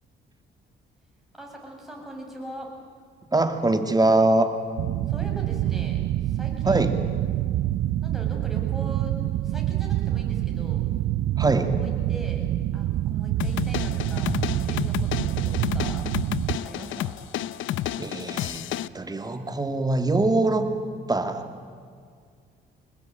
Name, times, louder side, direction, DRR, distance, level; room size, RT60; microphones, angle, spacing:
voice 1, 1.3-2.7 5.1-6.8 8.0-9.1 9.4-10.8 11.8-12.5 12.7-16.1 16.6-17.2, right 1 dB, ahead, -1 dB, 7.5 m, -41 dB
voice 2, 3.3-4.5 6.6-6.9 11.4-11.7 18.0-18.6 18.9-20.7 21.1-21.5, right 2 dB, 20° right, 7 dB, 2.4 m, -22 dB
sound 1, 4.8-16.6, right 14 dB, 75° right, 0.6 m, -26 dB
sound 2, 13.4-18.9, left 12 dB, 80° left, 0.7 m, -30 dB
25.0 x 20.0 x 9.2 m, 2.1 s
cardioid pair, 90°, 20 cm